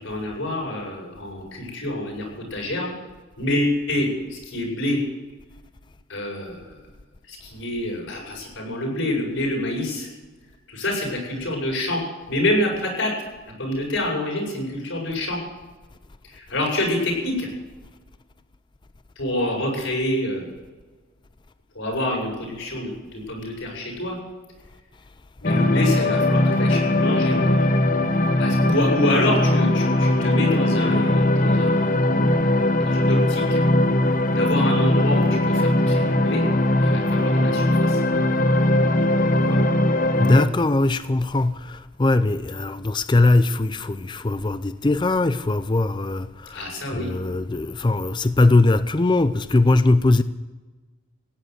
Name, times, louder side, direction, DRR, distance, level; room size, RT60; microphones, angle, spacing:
voice 1, 0.0-2.9 3.4-5.0 6.1-6.8 7.3-10.1 10.7-12.0 12.3-13.1 13.6-15.4 16.2-17.5 19.2-20.5 21.7-24.2 25.4-27.7 28.4-33.6 34.3-36.4 36.8-38.0 39.4-39.6 46.5-47.1, left 1 dB, 70° left, 7.3 m, -27 dB
sound 1, 25.4-40.5, left 1 dB, 40° left, 1.0 m, -20 dB
voice 2, 40.2-50.2, left 2 dB, 20° left, 0.4 m, -20 dB
16.5 x 10.0 x 8.1 m
head